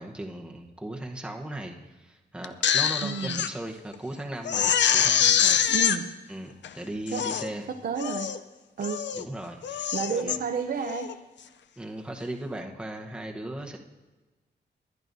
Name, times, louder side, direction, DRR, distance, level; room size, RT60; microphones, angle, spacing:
voice 1, 0.0-5.6 6.3-7.7 9.1-10.3 11.8-13.8, right 1 dB, 5° right, 1 dB, 1.0 m, -37 dB
Crying sobbing, 2.4-3.5 3.9-4.0 4.4-6.0 6.6-6.7 7.1-7.5 8.0-8.4 8.8-9.2 9.6-10.4 10.8-11.1, left 8 dB, 80° left, 0.5 m, -24 dB
voice 2, 3.0-3.4 5.7-6.0 7.1-7.3 7.8-8.3 8.8-9.0 9.9-11.1, right 6 dB, 60° right, 4 dB, 0.6 m, -30 dB
21.5 x 10.5 x 2.7 m, 1.2 s
wide cardioid pair, 155°, 18 cm